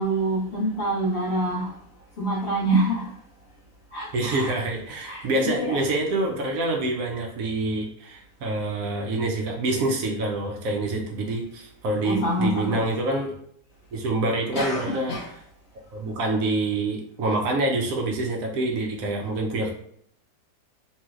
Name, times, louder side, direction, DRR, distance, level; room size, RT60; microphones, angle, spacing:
voice 1, 0.0-1.7 2.2-3.1 3.9-4.5 5.0-5.9 12.0-12.8 14.5-15.3, right 1 dB, 75° left, 0.6 m, -26 dB
voice 2, 4.1-13.3 13.9-15.1 15.9-19.7, right 2 dB, 65° right, 0.9 m, -26 dB
3.0 x 3.0 x 2.4 m
omnidirectional pair, 1.8 m